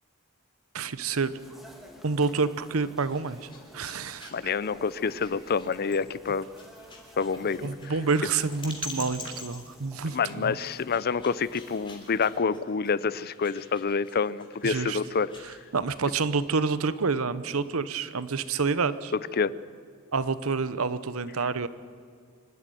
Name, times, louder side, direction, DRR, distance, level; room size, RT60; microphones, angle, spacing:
voice 1, 0.7-1.3 2.0-4.5 7.6-10.6 14.6-15.0 15.4-19.1 20.1-21.7, right 4 dB, 75° right, 14 dB, 0.9 m, -28 dB
sound 1, 1.1-12.4, equal, ahead, 2.3 m, -53 dB
sound 2, 2.9-15.6, left 3 dB, 25° left, 3.3 m, -46 dB
voice 2, 4.3-6.5 7.2-7.7 10.1-15.3 19.4-19.5, left 5 dB, 45° left, 18 dB, 0.5 m, -27 dB
25.5 x 12.0 x 9.3 m, 2.1 s
head